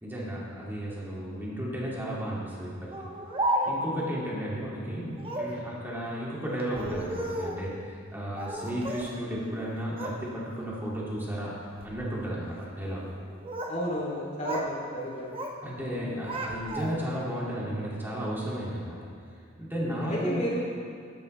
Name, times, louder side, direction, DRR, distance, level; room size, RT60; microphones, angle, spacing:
voice 1, 0.0-2.9 3.6-11.6 11.8-13.1 15.6-19.0 19.6-20.4, equal, 10° right, -6 dB, 2.2 m, -33 dB
Speech, 2.9-4.0 5.2-5.6 6.6-7.6 8.3-9.1 9.5-10.2 10.6-11.0 11.6-12.0 13.1-13.8 14.1-14.7 15.0-15.6 15.9-17.2, right 1 dB, 25° right, 1.0 m, -34 dB
voice 2, 13.7-15.3 20.1-20.6, equal, 35° left, -5 dB, 2.6 m, -32 dB
12.5 x 10.5 x 3.2 m, 2.3 s
head